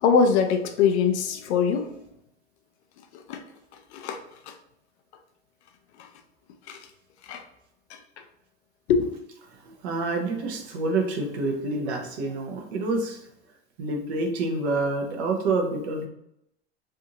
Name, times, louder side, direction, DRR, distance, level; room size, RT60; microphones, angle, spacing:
voice 1, 0.0-1.9 3.1-3.4 3.9-4.2 4.5-4.6 6.7-6.8 7.3-7.4 8.9-9.1, left 6 dB, 75° left, 6 dB, 0.6 m, -22 dB
voice 2, 9.7-13.2 13.8-16.1, right 3 dB, 70° right, 2 dB, 1.0 m, -27 dB
3.4 x 2.6 x 2.8 m, 0.78 s
hypercardioid pair, 95°, 33 cm